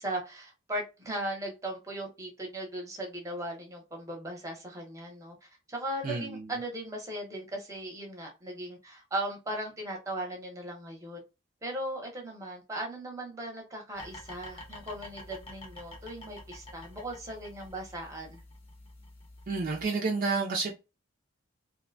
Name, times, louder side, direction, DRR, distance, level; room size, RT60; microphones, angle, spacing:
voice 1, 0.0-11.2 11.6-18.4, right 1 dB, 15° right, 0.7 m, -38 dB
voice 2, 6.0-6.4 19.5-20.7, right 4 dB, 40° right, 0.4 m, -30 dB
sound 1, 13.9-19.9, left 1 dB, 25° left, 0.6 m, -48 dB
2.7 x 2.1 x 2.5 m
head